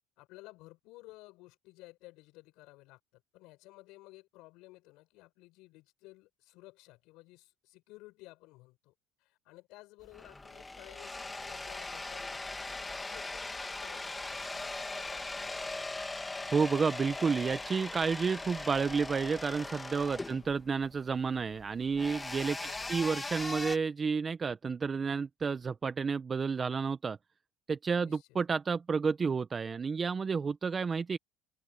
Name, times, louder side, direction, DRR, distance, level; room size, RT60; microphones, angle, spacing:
voice 1, 0.2-8.9 9.2-15.8 20.2-20.5 22.5-23.0 28.0-28.3, left 21 dB, 70° left, 5.5 m, -55 dB
sound 1, 10.0-23.8, left 2 dB, 10° left, 1.6 m, -40 dB
voice 2, 16.5-22.6 22.9-27.2 27.7-31.2, right 5 dB, 25° right, 0.6 m, -31 dB
open air
supercardioid pair, 125°, 0 cm